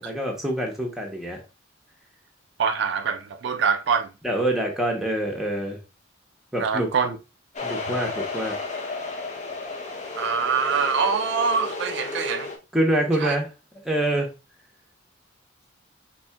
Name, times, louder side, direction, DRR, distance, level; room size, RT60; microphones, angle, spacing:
voice 1, 0.0-1.4 4.2-5.8 6.5-6.9 7.6-8.6 12.7-13.5 13.8-14.3, right 1 dB, ahead, 0.8 m, -25 dB
voice 2, 2.6-4.1 6.6-7.2 10.2-12.5 13.2-13.4, right 6 dB, 60° right, 0.4 m, -24 dB
sound 1, 7.5-12.6, left 3 dB, 35° left, 0.7 m, -33 dB
4.3 x 3.2 x 2.2 m
head